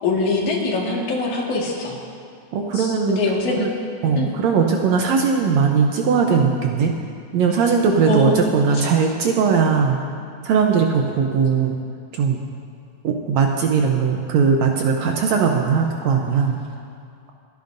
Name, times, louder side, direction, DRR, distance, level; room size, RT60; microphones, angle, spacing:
voice 1, 0.0-2.0 2.7-3.7 4.2-4.3 8.1-8.3 8.7-8.9, left 3 dB, 70° left, -3 dB, 3.3 m, -23 dB
voice 2, 2.5-3.2 3.6-3.7 4.0-6.9 7.3-10.0 10.4-11.8 12.1-12.4 13.0-16.6, right 5 dB, 70° right, 2 dB, 1.8 m, -19 dB
28.5 x 10.5 x 2.6 m, 2.3 s
omnidirectional pair, 3.7 m